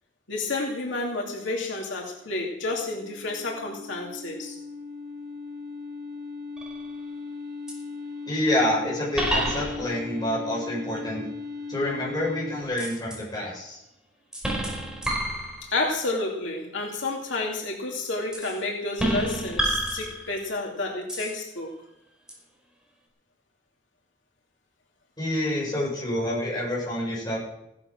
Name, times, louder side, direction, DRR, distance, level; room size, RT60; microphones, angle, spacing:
voice 1, 0.3-4.6 15.7-21.7, left 2 dB, 80° left, -1 dB, 2.7 m, -30 dB
sound 1, 2.4-12.6, left 4 dB, 60° right, 1.8 m, -38 dB
sound 2, 6.6-7.0 7.7-7.8 9.1-10.1 12.8-13.2 14.3-15.9 18.3-18.6 19.0-20.5 21.1-21.4 22.3-22.4, right 1 dB, 5° right, 5.0 m, -29 dB
voice 2, 8.3-11.2 11.7-13.8 25.2-27.5, left 1 dB, 20° left, -4 dB, 7.5 m, -27 dB
16.5 x 11.5 x 6.1 m, 0.85 s
head